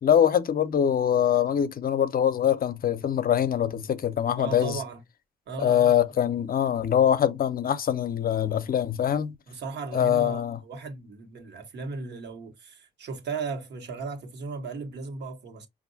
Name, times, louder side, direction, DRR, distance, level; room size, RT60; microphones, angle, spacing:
voice 1, 0.0-4.8 5.6-9.3 9.9-10.6, left 9 dB, 55° left, 0.6 m, -23 dB
voice 2, 4.4-5.0 5.5-5.9 9.5-15.7, right 4 dB, 70° right, 1.2 m, -36 dB
5.2 x 2.5 x 2.7 m
supercardioid pair, 55°, 18 cm